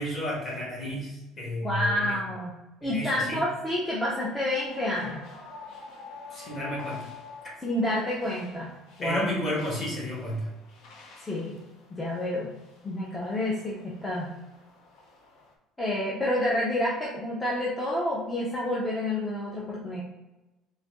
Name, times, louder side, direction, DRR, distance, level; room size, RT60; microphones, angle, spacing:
voice 1, 0.0-2.2 2.8-3.4 6.3-7.1 9.0-10.5, left 1 dB, 30° left, -3 dB, 1.3 m, -32 dB
voice 2, 1.6-2.5 2.8-5.2 7.6-8.7 9.0-9.2 11.2-11.6 11.9-12.5 12.8-14.3 15.8-20.0, left 1 dB, 10° left, -6 dB, 0.6 m, -29 dB
sound 1, 4.6-15.5, left 4 dB, 55° left, 0.8 m, -48 dB
4.0 x 3.0 x 3.6 m, 1.0 s
cardioid pair, 170°, 0 cm